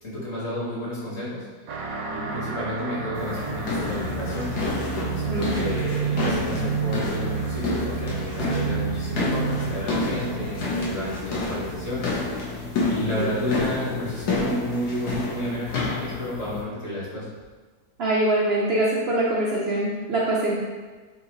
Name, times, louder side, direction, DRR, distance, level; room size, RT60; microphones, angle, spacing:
voice 1, 0.0-1.8 2.1-4.5 5.1-12.6 12.9-17.3, left 1 dB, 45° left, -7 dB, 1.5 m, -31 dB
sound 1, 1.7-12.7, right 6 dB, 70° right, 0.9 m, -31 dB
sound 2, 3.2-16.6, left 3 dB, 70° left, 1.4 m, -29 dB
voice 2, 18.0-20.5, right 1 dB, 90° right, -4 dB, 0.5 m, -23 dB
4.1 x 2.8 x 3.9 m, 1.4 s
omnidirectional pair, 1.8 m